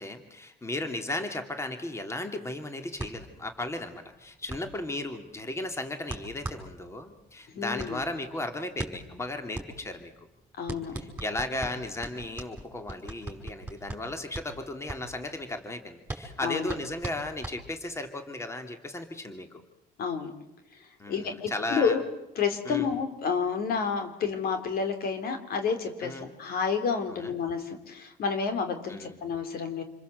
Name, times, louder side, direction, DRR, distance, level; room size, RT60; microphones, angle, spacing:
voice 1, 0.0-10.1 11.0-19.6 21.0-22.0 22.6-22.9 26.0-26.3 27.1-27.3 28.9-29.2, left 2 dB, 15° left, 6 dB, 2.7 m, -35 dB
sound 1, 3.0-18.1, right 2 dB, 10° right, 5.4 m, -41 dB
voice 2, 7.5-8.0 10.6-10.9 16.4-16.7 20.0-20.3 21.1-22.0 22.4-29.8, left 6 dB, 65° left, 7 dB, 3.6 m, -30 dB
28.0 x 22.0 x 7.9 m, 0.88 s
cardioid pair, 110°, 17 cm